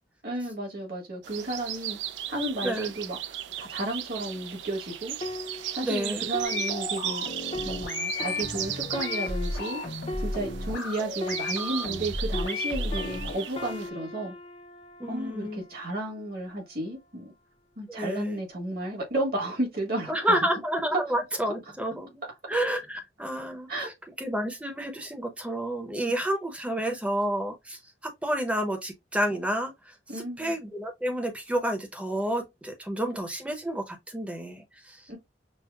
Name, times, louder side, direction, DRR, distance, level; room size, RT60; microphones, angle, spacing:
voice 1, 0.2-2.0 2.3-5.2 5.7-7.2 7.6-9.8 10.2-14.3 15.1-17.3 17.8-20.1 23.7-23.9 30.1-30.5 35.1-35.2, right 1 dB, 55° right, 1.5 m, -33 dB
sound 1, 1.2-13.9, right 12 dB, 85° right, 0.4 m, -36 dB
scary-melody, 5.2-12.1 12.3-15.9 16.6-16.8, left 2 dB, 35° left, 0.5 m, -40 dB
voice 2, 5.8-6.2 15.0-15.6 17.9-18.4 20.1-35.2, right 1 dB, 5° right, 0.7 m, -30 dB
sound 2, 6.4-13.4, left 2 dB, 90° left, 1.0 m, -33 dB
6.1 x 2.0 x 2.3 m
head